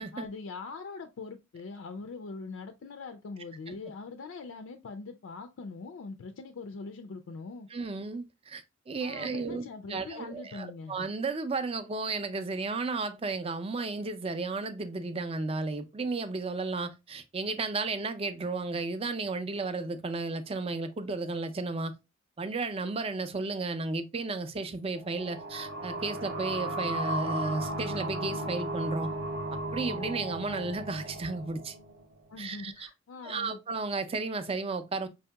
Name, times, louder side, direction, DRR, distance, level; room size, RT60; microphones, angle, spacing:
voice 1, 0.1-7.7 9.0-11.0 32.3-33.6, left 4 dB, 75° left, 0.4 m, -42 dB
voice 2, 7.7-21.9 22.4-29.1 29.5-31.7 32.4-32.9 33.2-35.1, right 3 dB, 30° right, 0.4 m, -33 dB
sound 1, 24.9-32.3, right 1 dB, 55° right, 0.8 m, -35 dB
5.0 x 2.7 x 2.2 m
head